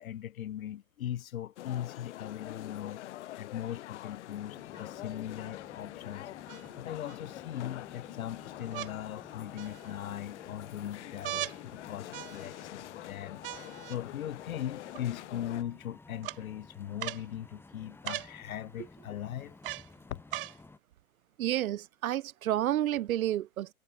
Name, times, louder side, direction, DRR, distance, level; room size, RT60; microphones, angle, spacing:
voice 1, 0.0-3.0 3.4-6.3 6.8-13.4 13.9-19.6 20.1-20.2, left 11 dB, 70° left, 3.8 m, -39 dB
sound 1, 1.6-15.6, left 14 dB, 50° left, 1.8 m, -45 dB
sound 2, 4.5-20.8, left 3 dB, 5° left, 6.4 m, -55 dB
sound 3, 4.7-4.8 6.5-7.2 8.7-8.9 9.6-10.1 11.2-11.6 12.1-12.7 13.4-14.0 14.9-15.0 16.2-16.4 17.0-17.3 18.0-18.3 19.6-19.9 20.3-20.6 21.4-21.5, right 14 dB, 40° right, 0.5 m, -39 dB
voice 2, 21.4-23.7, right 12 dB, 70° right, 1.2 m, -30 dB
hypercardioid pair, 160°, 43 cm